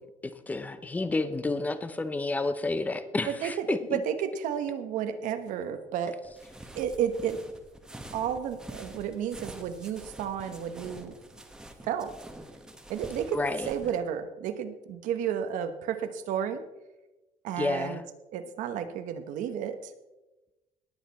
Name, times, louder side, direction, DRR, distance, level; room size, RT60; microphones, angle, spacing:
voice 1, 0.2-4.0 13.3-13.7 17.6-18.0, left 2 dB, 10° left, 12 dB, 0.7 m, -30 dB
voice 2, 3.3-6.2 6.7-7.4 8.1-11.1 11.8-12.1 12.9-13.4 13.7-16.6 17.4-18.0 18.3-19.9, right 8 dB, 75° right, 9 dB, 1.2 m, -32 dB
sound 1, 6.2-14.0, right 1 dB, 5° right, 1.1 m, -46 dB
19.0 x 8.3 x 4.2 m, 1.1 s
cardioid pair, 170°, 13 cm